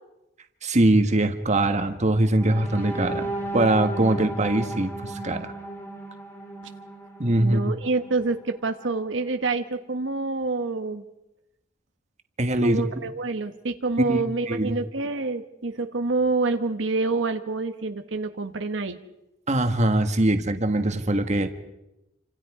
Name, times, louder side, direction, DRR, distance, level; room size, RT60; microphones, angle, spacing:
voice 1, 0.6-5.5 7.2-7.7 12.4-12.8 14.1-14.2 14.5-14.8 19.5-21.5, right 1 dB, 40° right, 7 dB, 1.6 m, -22 dB
sound 1, 2.4-8.3 8.8-9.0 9.3-9.6, right 2 dB, 15° left, 2.8 m, -35 dB
voice 2, 7.4-11.0 12.6-19.0, right 3 dB, 75° right, 7 dB, 1.2 m, -27 dB
28.0 x 26.0 x 4.9 m, 0.91 s
head